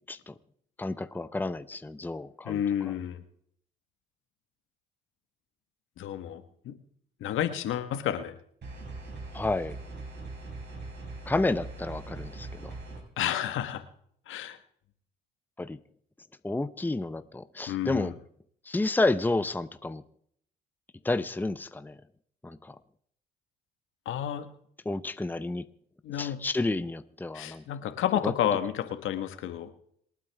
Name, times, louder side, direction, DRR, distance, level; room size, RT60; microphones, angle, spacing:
voice 1, 0.8-2.6 9.3-9.8 11.3-12.7 15.6-15.8 16.4-18.1 18.7-20.0 21.0-22.0 22.4-22.8 24.9-25.6 26.2-27.6 28.2-28.3, left 2 dB, 10° left, 12 dB, 0.8 m, -30 dB
voice 2, 2.4-3.2 6.0-6.8 7.2-8.4 13.2-13.8 14.3-14.6 17.7-18.1 24.0-24.5 26.0-26.5 27.3-29.7, left 10 dB, 75° left, 9 dB, 1.5 m, -31 dB
sound 1, 8.6-13.0, right 3 dB, 55° right, 5.2 m, -41 dB
27.0 x 9.2 x 3.5 m, 0.66 s
supercardioid pair, 60°, 21 cm